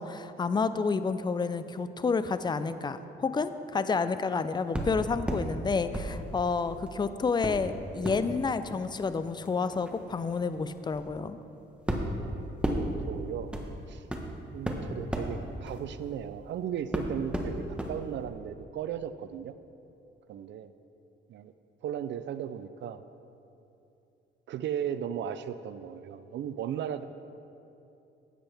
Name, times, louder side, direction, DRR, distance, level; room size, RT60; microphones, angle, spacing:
voice 1, 0.0-11.4, left 4 dB, 20° left, 12 dB, 0.5 m, -30 dB
sound 1, 4.7-5.5 5.9-6.9 7.4-16.5 16.9-17.9 18.3-18.4, right 1 dB, 5° right, 1.2 m, -35 dB
voice 2, 12.8-13.5 13.9-14.1 14.5-19.5 20.3-20.7 21.3-21.5 21.8-23.0 24.5-27.0, right 9 dB, 65° right, 12 dB, 0.4 m, -36 dB
13.5 x 8.9 x 3.5 m, 2.8 s
cardioid pair, 90°, 20 cm